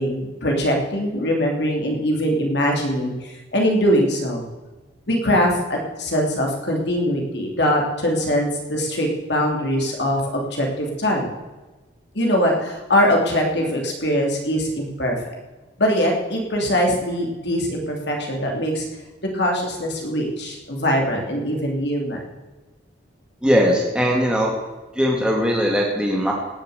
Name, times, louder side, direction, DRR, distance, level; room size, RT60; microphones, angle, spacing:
voice 1, 0.0-4.4 5.1-11.3 12.1-15.2 15.8-18.8 19.3-22.2, equal, 65° left, 0 dB, 2.9 m, -22 dB
voice 2, 23.4-24.5 25.0-26.3, equal, 5° right, -2 dB, 1.8 m, -19 dB
17.5 x 7.2 x 8.0 m, 1.2 s
head